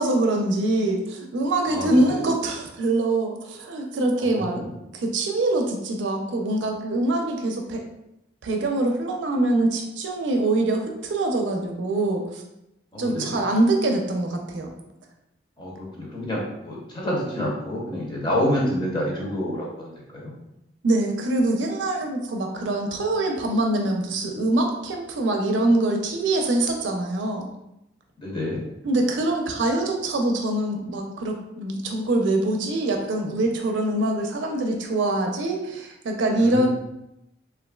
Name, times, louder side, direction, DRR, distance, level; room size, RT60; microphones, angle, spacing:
voice 1, 0.0-7.8 8.4-12.4 13.0-14.7 20.8-27.5 28.8-36.7, right 2 dB, 80° right, 2 dB, 0.4 m, -24 dB
voice 2, 1.7-2.2 4.2-4.7 12.9-13.4 15.6-20.3 28.2-28.6 36.4-36.7, left 1 dB, 25° left, -4 dB, 0.7 m, -28 dB
3.0 x 2.4 x 2.2 m, 0.86 s
head